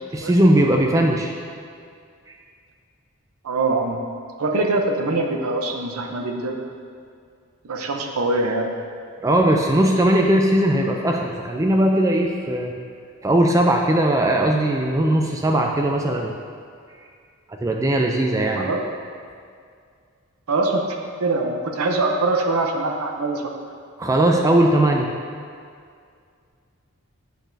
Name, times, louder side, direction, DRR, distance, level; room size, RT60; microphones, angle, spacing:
voice 1, 0.1-1.3 9.2-12.7 13.2-16.3 17.6-18.7 24.0-25.1, right 1 dB, 15° right, 1 dB, 0.3 m, -19 dB
voice 2, 3.4-4.0 4.4-6.6 7.6-8.7 18.6-18.8 20.5-23.5, right 2 dB, 80° right, 2 dB, 0.6 m, -23 dB
8.2 x 6.1 x 2.6 m, 2.2 s
head